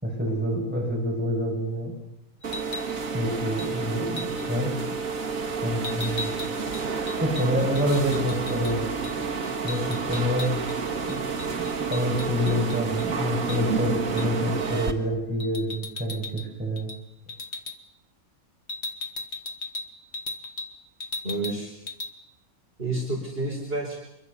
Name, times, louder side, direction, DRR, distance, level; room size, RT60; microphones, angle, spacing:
voice 1, 0.0-1.9 3.1-4.7 5.6-6.3 7.2-8.9 9.6-10.5 11.0-11.2 11.6-16.9, equal, 5° right, -1 dB, 6.6 m, -27 dB
sound 1, 2.4-2.9 3.6-3.7 4.2-4.5 5.8-8.7 9.0-9.2 9.4-10.8 11.1-13.1 13.5-13.6 14.2-14.4 15.4-16.5 16.8-17.0 17.3-17.8 18.7-20.7 21.0-21.6 21.9-22.1, left 3 dB, 50° left, 1.7 m, -37 dB
sound 2, 2.4-14.9, right 5 dB, 70° right, 2.2 m, -29 dB
voice 2, 21.2-21.7 22.8-24.0, right 2 dB, 40° right, -1 dB, 4.6 m, -29 dB
25.5 x 22.5 x 6.8 m, 0.84 s
omnidirectional pair, 1.5 m